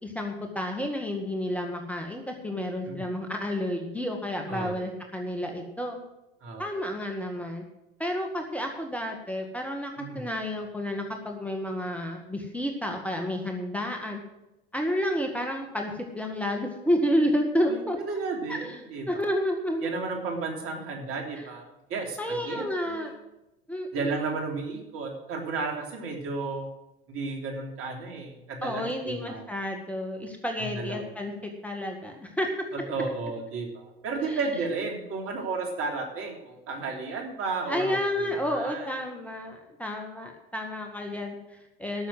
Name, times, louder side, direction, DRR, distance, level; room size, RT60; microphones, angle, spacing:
voice 1, 0.0-6.0 6.6-7.6 8.0-14.2 14.7-18.0 18.5-18.8 19.1-19.9 22.2-23.1 23.7-24.3 28.6-32.7 34.3-34.4 37.7-42.1, equal, 5° left, 2 dB, 1.8 m, -30 dB
voice 2, 10.0-10.3 17.6-17.8 18.1-19.3 19.8-23.2 23.9-26.7 27.1-29.4 30.6-31.1 32.9-38.9, right 4 dB, 45° right, 1 dB, 3.3 m, -33 dB
12.5 x 6.8 x 7.8 m, 0.92 s
hypercardioid pair, 75°, 30 cm